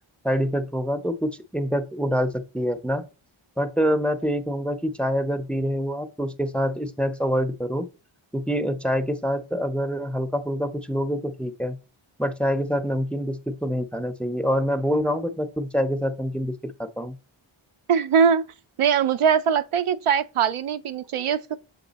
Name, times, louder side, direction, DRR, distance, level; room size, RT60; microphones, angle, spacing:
voice 1, 0.2-3.0 3.6-7.9 8.3-11.8 12.2-17.2, equal, ahead, 0.6 m, -26 dB
voice 2, 17.9-18.4 18.8-21.6, right 7 dB, 80° right, 0.6 m, -21 dB
7.0 x 3.7 x 4.0 m
wide cardioid pair, 75°, 50 cm